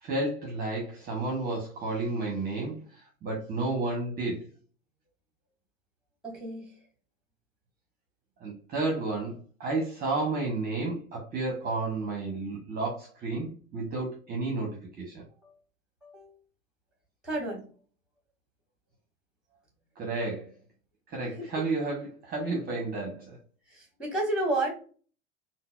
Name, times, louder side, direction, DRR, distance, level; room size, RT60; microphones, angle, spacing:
voice 1, 0.0-4.5 8.4-15.2 20.0-20.5 21.1-23.4, right 3 dB, 25° right, 0 dB, 0.8 m, -32 dB
voice 2, 6.2-6.6 15.4-15.5 16.0-16.3 17.2-17.6 21.4-21.5 23.8-24.7, right 2 dB, ahead, 1 dB, 1.2 m, -31 dB
3.8 x 2.1 x 2.2 m, 0.40 s
figure-of-eight pair, 90°, 40 cm